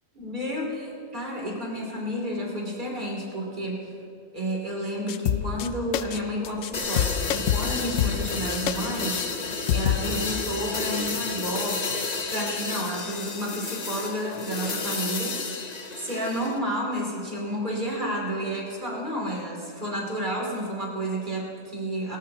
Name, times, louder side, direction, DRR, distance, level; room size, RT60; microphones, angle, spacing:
voice 1, 0.2-3.8 4.3-9.2 9.5-11.8 12.3-15.6 16.0-22.2, equal, 35° right, -2 dB, 3.1 m, -31 dB
sound 1, 5.1-5.7 5.9-6.2 6.4-6.7 7.0-8.8 9.2-9.3 9.7-10.0, left 10 dB, 75° left, 0.9 m, -26 dB
sound 2, 6.7-16.6, left 4 dB, 35° left, 0.9 m, -31 dB
19.0 x 18.0 x 2.9 m, 2.6 s
omnidirectional pair, 1.3 m